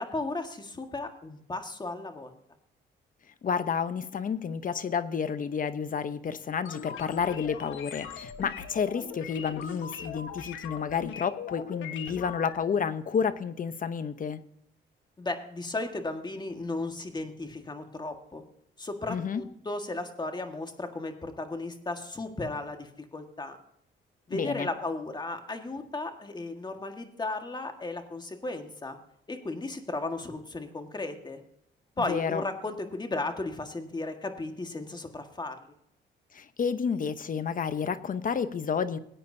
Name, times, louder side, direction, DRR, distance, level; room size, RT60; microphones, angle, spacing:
voice 1, 0.0-2.3 15.2-18.4 18.8-23.6 24.3-29.0 29.3-31.4 32.0-35.6, left 2 dB, 20° left, 6 dB, 1.7 m, -35 dB
voice 2, 3.4-14.4 19.1-19.4 24.3-24.7 32.0-32.4 36.3-39.0, left 6 dB, 45° left, 12 dB, 0.9 m, -30 dB
sound 1, 6.7-12.6, left 7 dB, 80° left, 1.3 m, -40 dB
19.0 x 8.9 x 2.7 m, 0.73 s
cardioid pair, 90°, 20 cm